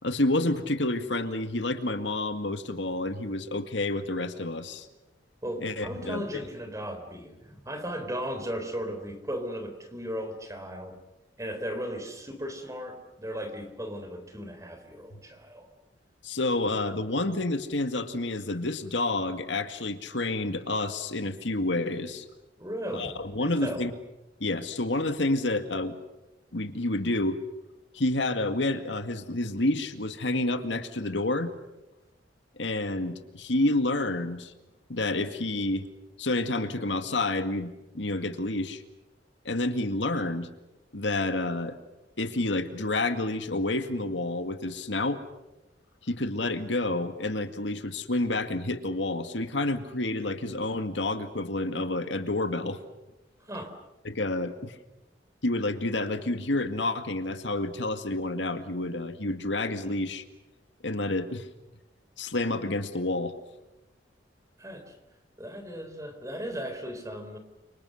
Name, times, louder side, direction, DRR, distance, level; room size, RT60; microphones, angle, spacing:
voice 1, 0.0-4.9 5.6-6.4 15.1-15.2 16.2-22.3 22.9-23.9 24.4-25.9 26.5-27.4 27.9-31.5 32.6-34.5 34.9-35.9 36.2-38.8 39.4-40.5 40.9-41.8 42.2-45.2 46.0-52.8 54.0-54.8 55.4-60.2 60.8-61.5 62.2-63.3, left 2 dB, 80° left, 8 dB, 2.1 m, -29 dB
voice 2, 5.4-11.0 11.4-15.7 16.6-16.7 22.6-23.9 53.4-53.8 64.6-65.0 65.4-67.4, equal, 15° right, 8 dB, 3.8 m, -36 dB
30.0 x 26.5 x 6.6 m, 0.98 s
head